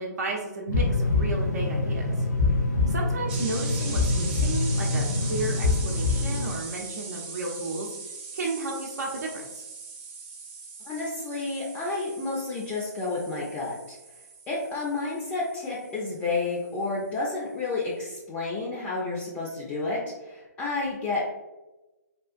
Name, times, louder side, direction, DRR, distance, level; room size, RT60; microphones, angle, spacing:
voice 1, 0.0-2.1 2.9-7.9 8.3-9.7, right 2 dB, 65° right, -2 dB, 0.7 m, -33 dB
sound 1, 0.7-6.3, left 3 dB, 90° left, 1.1 m, -27 dB
sound 2, 0.7-6.5, left 2 dB, 65° left, 0.7 m, -29 dB
sound 3, 3.3-16.9, right 4 dB, 35° right, 0.9 m, -40 dB
voice 2, 10.9-14.0 14.5-21.3, left 3 dB, 15° left, -5 dB, 0.5 m, -30 dB
3.6 x 2.3 x 2.4 m, 1.1 s
hypercardioid pair, 145°, 10 cm